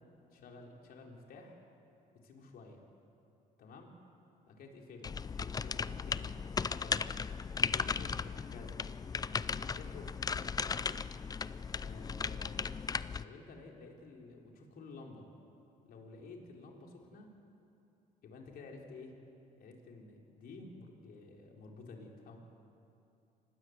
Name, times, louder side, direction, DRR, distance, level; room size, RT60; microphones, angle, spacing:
voice 1, 0.3-1.6 2.2-2.8 3.6-3.9 4.5-5.1 5.5-7.1 7.6-8.8 9.6-10.4 11.8-12.7 13.2-15.3 15.8-17.3 18.2-19.1 19.6-22.4, left 3 dB, 65° left, 1 dB, 4.1 m, -52 dB
sound 1, 5.0-13.2, left 5 dB, 20° left, 0.5 m, -36 dB
26.5 x 19.0 x 8.1 m, 2.7 s
cardioid pair, 110°, 17 cm